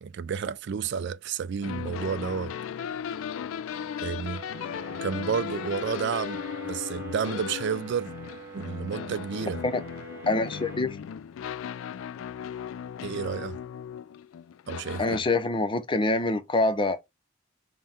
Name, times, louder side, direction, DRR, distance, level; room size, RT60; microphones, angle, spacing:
voice 1, 0.0-2.5 4.0-4.4 5.0-8.1 8.5-9.6 13.0-13.6 14.7-15.2, right 6 dB, 60° right, 0.3 m, -31 dB
sound 1, 1.6-15.2, left 8 dB, 85° left, 0.3 m, -37 dB
sound 2, 4.3-10.8, right 4 dB, 10° right, 1.5 m, -44 dB
voice 2, 10.3-11.0 15.0-17.0, left 2 dB, 25° left, 0.5 m, -25 dB
5.6 x 2.2 x 4.2 m
head